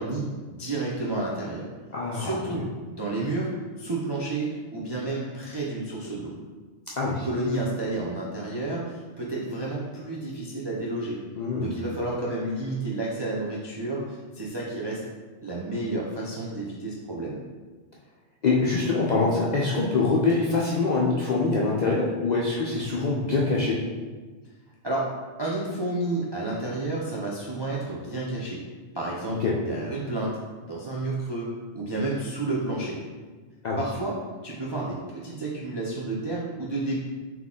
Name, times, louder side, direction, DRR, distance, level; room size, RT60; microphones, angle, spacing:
voice 1, 0.0-1.7 2.1-3.5 3.8-6.3 7.0-11.2 11.6-15.0 15.4-17.4 24.8-25.1 25.4-28.6 28.9-29.4 29.7-30.3 30.7-33.0 33.8-34.1 34.4-37.0, right 2 dB, 45° right, -5 dB, 0.3 m, -30 dB
voice 2, 1.9-2.3 7.0-7.3 11.4-11.8 18.4-23.8 29.4-29.6 33.6-33.8, left 3 dB, 55° left, -4 dB, 0.4 m, -24 dB
3.9 x 2.9 x 3.6 m, 1.4 s
omnidirectional pair, 1.2 m